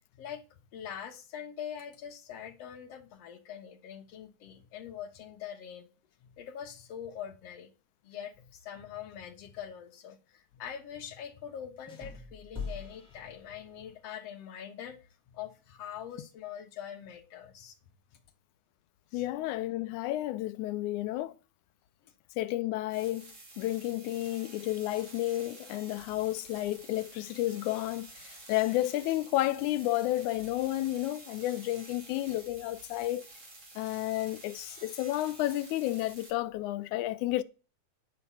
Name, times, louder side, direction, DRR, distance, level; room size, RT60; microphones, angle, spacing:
voice 1, 0.7-5.9 6.2-7.7 8.0-15.0 15.3-17.8 19.1-19.3 22.0-22.1, left 9 dB, 60° left, 2.1 m, -43 dB
sound 1, 11.9-14.1, left 4 dB, ahead, 2.0 m, -43 dB
voice 2, 19.1-21.4 22.4-33.3 33.8-37.4, left 15 dB, 80° left, 2.0 m, -31 dB
sound 2, 22.9-36.3, right 2 dB, 30° right, 1.8 m, -51 dB
10.0 x 4.4 x 6.9 m
omnidirectional pair, 3.6 m